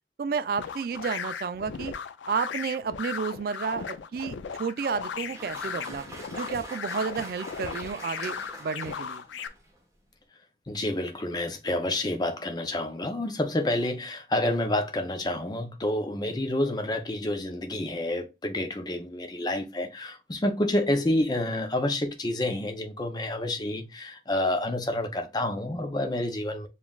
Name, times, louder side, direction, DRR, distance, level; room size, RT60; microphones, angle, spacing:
voice 1, 0.2-1.9 2.3-6.1 6.3-9.2, right 5 dB, 55° right, 0.3 m, -31 dB
sound 1, 0.6-9.5, left 6 dB, 85° left, 0.4 m, -37 dB
Applause, 4.9-9.8, right 1 dB, 15° right, 1.1 m, -44 dB
voice 2, 10.7-26.7, left 1 dB, 20° left, 0.5 m, -29 dB
7.0 x 2.4 x 2.3 m
head